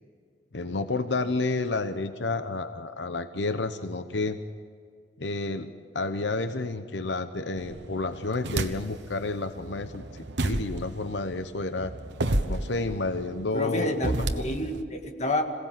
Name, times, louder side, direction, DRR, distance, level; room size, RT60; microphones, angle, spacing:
voice 1, 0.5-4.4 5.2-11.9 12.5-14.4, left 3 dB, 90° left, 10 dB, 0.9 m, -30 dB
sound 1, 7.6-9.1 9.5-14.8, right 2 dB, 85° right, 1.2 m, -31 dB
voice 2, 13.5-15.4, left 1 dB, 40° left, 3 dB, 2.1 m, -29 dB
26.5 x 17.5 x 7.6 m, 2.1 s
head